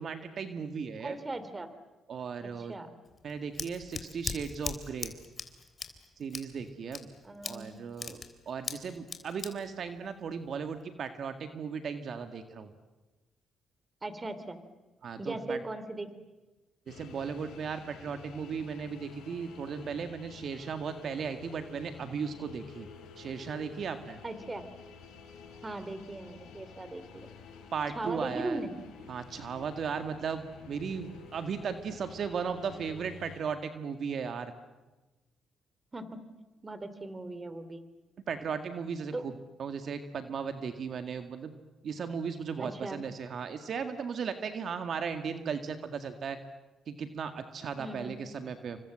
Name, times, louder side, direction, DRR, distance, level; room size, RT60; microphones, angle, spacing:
voice 1, 0.0-1.2 2.1-2.7 3.2-5.1 6.2-7.1 7.4-12.7 15.0-15.6 16.9-22.9 23.2-24.2 27.7-28.6 29.1-34.5 38.3-39.3 39.6-41.5 41.8-46.4 46.9-48.8, right 6 dB, 55° right, 8 dB, 1.9 m, -36 dB
voice 2, 1.0-1.7 2.4-2.9 7.2-7.8 14.0-14.6 15.2-16.1 24.2-24.6 25.6-27.3 27.9-28.7 35.9-36.1 36.6-37.8 39.1-39.2 42.6-43.0 47.8-48.2, right 2 dB, 25° right, 12 dB, 3.1 m, -38 dB
Scissors, 3.0-10.8, left 5 dB, 35° left, 3.5 m, -41 dB
sound 1, 16.9-33.4, left 6 dB, 85° left, 5.7 m, -50 dB
28.5 x 25.0 x 7.7 m, 1.2 s
cardioid pair, 90°, 0 cm